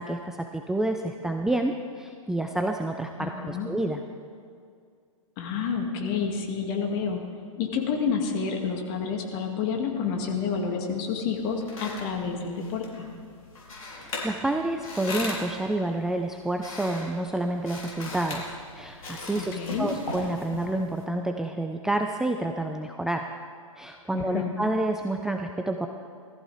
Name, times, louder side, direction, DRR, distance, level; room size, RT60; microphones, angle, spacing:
voice 1, 0.0-4.0 14.0-23.3 23.8-25.9, right 1 dB, 5° right, 4 dB, 0.5 m, -29 dB
voice 2, 3.2-3.7 5.4-7.2 7.6-13.1 19.4-19.9 24.1-24.5, left 6 dB, 40° left, 2 dB, 2.3 m, -29 dB
sound 1, 11.3-21.0, left 2 dB, 75° left, 4.0 m, -39 dB
20.0 x 14.0 x 3.5 m, 2.3 s
hypercardioid pair, 115°, 18 cm